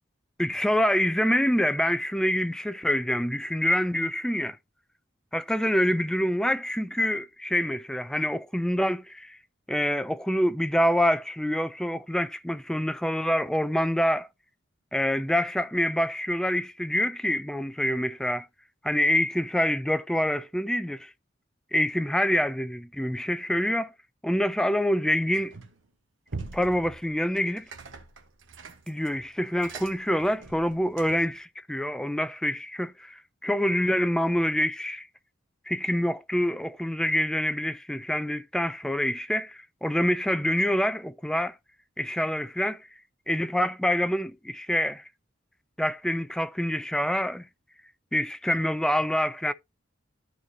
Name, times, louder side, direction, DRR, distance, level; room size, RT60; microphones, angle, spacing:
voice 1, 0.4-4.6 5.3-9.4 9.7-14.3 14.9-18.5 18.8-21.1 21.7-23.9 24.2-25.5 26.5-27.7 28.9-35.1 35.7-41.5 42.0-42.9 43.3-45.0 45.8-47.5 48.1-49.5, equal, 5° left, 0.4 m, -26 dB
sound 1, 25.3-25.9 26.3-31.4, right 3 dB, 80° right, 1.3 m, -43 dB
13.5 x 4.6 x 2.8 m
head